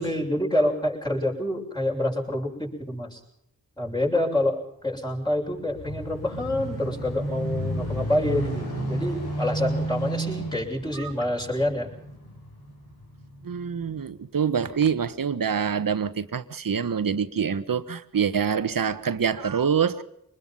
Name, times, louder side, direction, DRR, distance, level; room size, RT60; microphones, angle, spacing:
voice 1, 0.0-3.2 3.8-11.9, left 1 dB, 10° left, -2 dB, 7.1 m, -27 dB
sound 1, 5.2-14.0 14.6-14.7, right 1 dB, 80° left, 6.7 m, -32 dB
voice 2, 13.4-20.0, right 7 dB, 65° right, 12 dB, 1.4 m, -26 dB
24.5 x 20.5 x 5.6 m, 0.77 s
cardioid pair, 55°, 36 cm